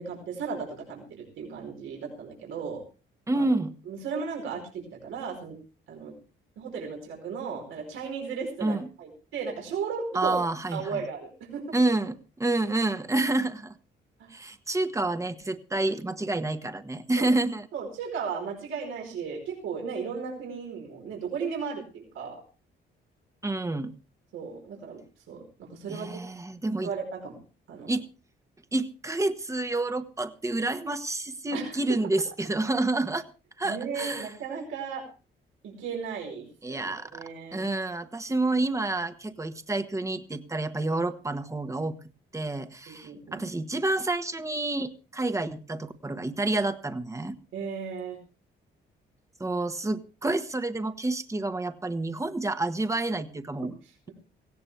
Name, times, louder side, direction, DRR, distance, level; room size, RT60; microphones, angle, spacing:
voice 1, 0.0-2.8 3.3-3.5 3.9-5.6 5.9-6.1 6.6-10.4 10.7-11.7 14.2-14.3 17.2-17.3 17.7-22.4 24.3-25.0 25.3-26.1 26.8-27.4 27.7-27.9 31.5-31.8 33.6-35.0 35.6-37.6 42.9-43.4 47.5-48.2 53.8-54.1, right 6 dB, 85° right, 1 dB, 4.9 m, -35 dB
voice 2, 3.3-3.7 8.6-8.9 10.1-11.0 11.7-13.7 14.3-17.7 23.4-23.9 25.9-26.9 27.9-28.1 28.7-33.2 33.6-34.3 36.6-37.2 37.5-42.0 42.3-47.4 49.4-53.7, right 2 dB, 15° right, 9 dB, 1.5 m, -29 dB
18.0 x 16.5 x 3.4 m, 0.33 s
cardioid pair, 90°, 20 cm